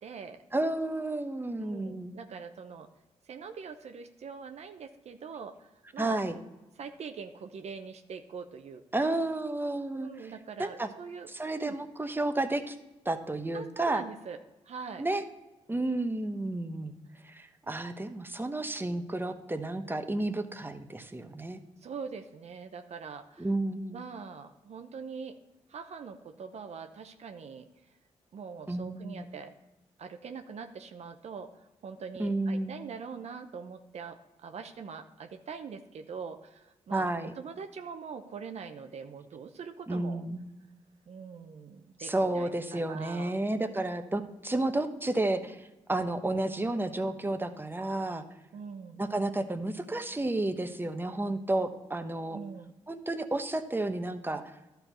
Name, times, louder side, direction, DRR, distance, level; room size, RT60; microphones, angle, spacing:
voice 1, 0.0-0.4 1.6-2.9 3.3-6.2 6.8-9.2 9.9-11.3 11.6-11.8 13.5-14.4 14.6-15.0 21.8-23.5 23.9-25.4 25.7-27.7 28.3-29.5 30.0-31.5 31.8-37.1 37.4-40.2 41.1-43.4 48.5-49.0 52.3-52.7, right 6 dB, 60° right, 7 dB, 0.7 m, -43 dB
voice 2, 0.5-2.1 6.0-6.4 8.9-10.3 10.6-10.9 11.3-12.7 13.0-14.0 15.0-15.2 15.7-16.9 17.2-21.6 23.4-24.0 28.7-29.2 32.2-32.8 36.9-37.3 39.9-40.5 42.0-48.2 49.0-52.4 52.9-54.4, right 2 dB, 15° right, 8 dB, 1.0 m, -31 dB
11.5 x 4.6 x 6.7 m, 1.0 s
supercardioid pair, 50°, 12 cm